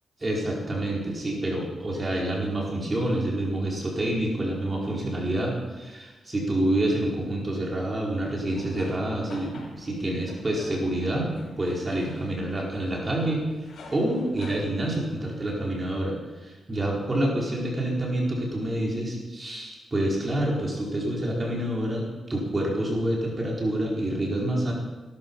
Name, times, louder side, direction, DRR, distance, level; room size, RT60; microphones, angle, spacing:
voice 1, 0.2-13.4 13.9-24.7, right 1 dB, 30° right, -3 dB, 4.8 m, -27 dB
sound 1, 8.0-15.8, left 3 dB, 75° left, 5.6 m, -49 dB
18.5 x 13.0 x 5.7 m, 1.2 s
cardioid pair, 85°, 0 cm